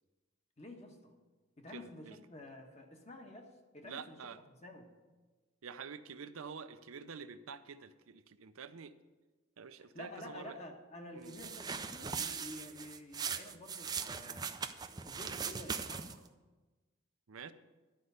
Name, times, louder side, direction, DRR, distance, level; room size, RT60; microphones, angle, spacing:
voice 1, 0.6-1.1 1.6-4.3 4.6-4.9 9.8-14.5 15.0-16.2, left 1 dB, 30° left, 3 dB, 1.3 m, -50 dB
voice 2, 1.7-2.2 3.8-4.4 5.6-8.9 9.6-10.6 11.1-11.3 17.3-17.5, right 6 dB, 85° right, 12 dB, 0.6 m, -48 dB
sound 1, 11.3-16.3, right 6 dB, 20° right, 0.4 m, -40 dB
11.5 x 5.3 x 8.0 m, 1.2 s
head